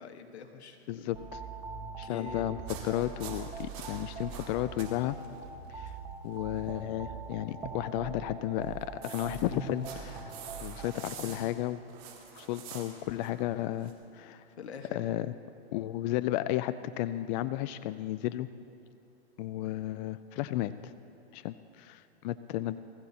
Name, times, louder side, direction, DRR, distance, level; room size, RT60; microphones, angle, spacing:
voice 1, 0.0-1.2 2.0-2.5 11.2-11.5 14.6-15.0, left 5 dB, 90° left, 5 dB, 1.4 m, -45 dB
voice 2, 0.9-1.4 2.0-2.6 2.8-5.2 5.7-5.9 6.2-10.3 10.6-11.8 12.3-14.4 15.0-15.3 15.7-18.5 19.4-20.9 21.3-22.8, left 14 dB, 45° left, 13 dB, 0.4 m, -33 dB
sound 1, 1.1-11.1, right 5 dB, 15° right, 1.4 m, -42 dB
sound 2, 2.7-4.9 5.2-5.4 5.9-6.0 8.6-13.9, right 7 dB, 50° right, 3.1 m, -46 dB
20.5 x 15.0 x 2.8 m, 2.6 s
hypercardioid pair, 115°, 32 cm